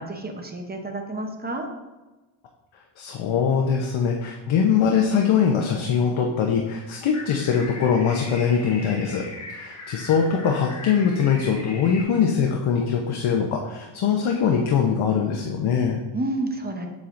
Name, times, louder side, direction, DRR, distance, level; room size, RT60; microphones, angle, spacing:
voice 1, 0.0-1.7 16.1-16.9, right 2 dB, 20° right, 3 dB, 0.7 m, -30 dB
voice 2, 3.0-16.0, left 7 dB, 75° left, 1 dB, 0.8 m, -22 dB
sound 1, 7.1-12.0, left 2 dB, 35° left, 1.3 m, -39 dB
7.4 x 7.2 x 2.6 m, 1.2 s
wide cardioid pair, 155°, 48 cm